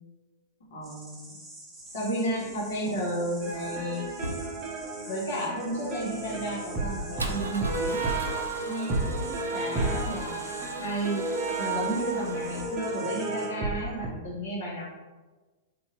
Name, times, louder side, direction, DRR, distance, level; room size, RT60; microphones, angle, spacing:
voice 1, 0.7-1.4 1.9-4.1 5.1-8.0 8.7-11.2 11.6-14.8, right 1 dB, 65° left, -5 dB, 1.2 m, -33 dB
sound 1, 0.8-13.5, right 1 dB, 10° right, 0.9 m, -48 dB
Male speech man speaking / Car / Engine starting, 1.9-13.0, right 1 dB, 85° right, 0.3 m, -42 dB
sound 2, 3.4-14.1, right 3 dB, 35° right, 0.6 m, -32 dB
2.7 x 2.6 x 2.7 m, 1.2 s
hypercardioid pair, 105°, 0 cm